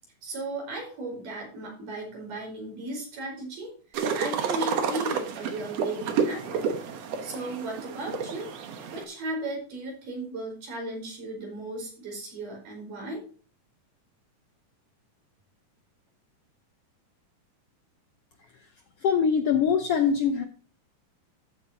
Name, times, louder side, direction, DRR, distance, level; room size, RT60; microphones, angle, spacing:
voice 1, 0.2-6.6 7.2-8.5 8.9-13.2, right 2 dB, 85° right, 0 dB, 6.3 m, -36 dB
sound 1, 3.9-9.0, right 6 dB, 60° right, 2.1 m, -30 dB
voice 2, 19.0-20.4, left 7 dB, 75° left, 6 dB, 1.4 m, -23 dB
14.0 x 8.3 x 2.8 m, 0.38 s
omnidirectional pair, 3.7 m